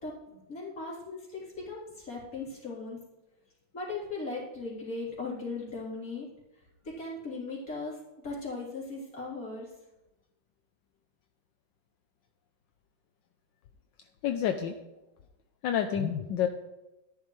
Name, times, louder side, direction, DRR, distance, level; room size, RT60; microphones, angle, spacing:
voice 1, 0.0-3.0 3.7-6.3 7.0-8.0 8.2-9.7, left 3 dB, 45° left, -6 dB, 4.0 m, -38 dB
voice 2, 14.2-14.8 15.6-16.5, left 9 dB, 75° left, 6 dB, 1.3 m, -28 dB
13.5 x 10.5 x 3.2 m, 1.0 s
omnidirectional pair, 2.1 m